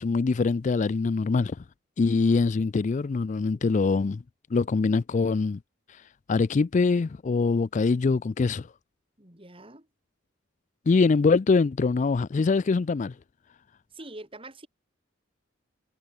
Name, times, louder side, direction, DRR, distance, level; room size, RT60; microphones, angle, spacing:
voice 1, 0.0-1.6 2.0-4.2 4.5-5.6 5.9-6.0 6.3-8.7 10.9-13.1, left 4 dB, 40° left, 0.4 m, -23 dB
voice 2, 9.2-9.9 13.9-14.7, right 2 dB, 25° right, 4.4 m, -44 dB
head